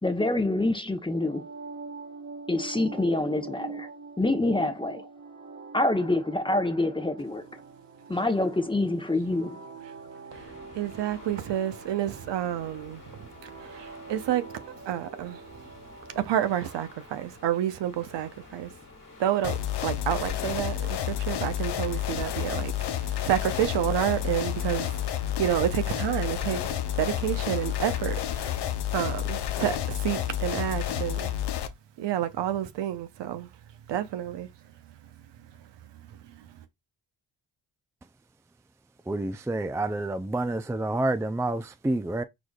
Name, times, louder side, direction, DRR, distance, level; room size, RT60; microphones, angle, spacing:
voice 1, 0.0-1.4 2.5-3.9 4.2-5.1 5.7-7.5 8.1-9.6, left 2 dB, 10° left, 0.8 m, -26 dB
sound 1, 1.1-17.0, right 4 dB, 40° right, 1.5 m, -45 dB
sound 2, 10.3-28.4, left 3 dB, 45° left, 1.7 m, -49 dB
voice 2, 10.3-14.4 14.9-15.4 16.2-18.7 19.2-24.9 25.4-28.6 28.9-31.3 32.0-33.5 33.9-34.5 36.1-36.6, right 11 dB, 75° right, 0.8 m, -29 dB
sound 3, 19.4-31.7, left 11 dB, 70° left, 0.8 m, -30 dB
voice 3, 39.1-42.2, right 2 dB, 5° right, 0.4 m, -28 dB
4.7 x 4.0 x 2.3 m
supercardioid pair, 55°, 42 cm